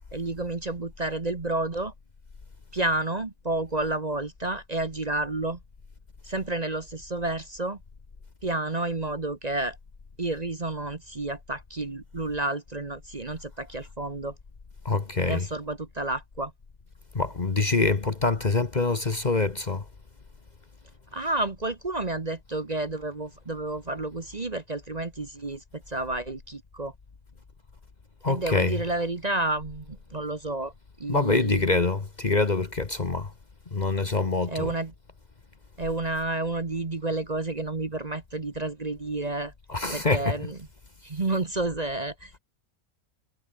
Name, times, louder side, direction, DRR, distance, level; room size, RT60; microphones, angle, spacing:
voice 1, 0.1-1.9 2.7-5.6 6.2-7.8 8.4-9.8 10.2-14.3 15.3-16.5 21.1-26.9 28.3-30.7 31.0-31.7 34.5-34.9 35.8-39.5 39.9-40.6 41.0-42.4, right 2 dB, 30° right, 1.3 m, -30 dB
voice 2, 14.8-15.5 17.1-19.8 28.2-28.8 31.1-33.3 33.7-34.7 39.7-40.3, left 3 dB, 30° left, 1.3 m, -25 dB
omnidirectional pair, 1.5 m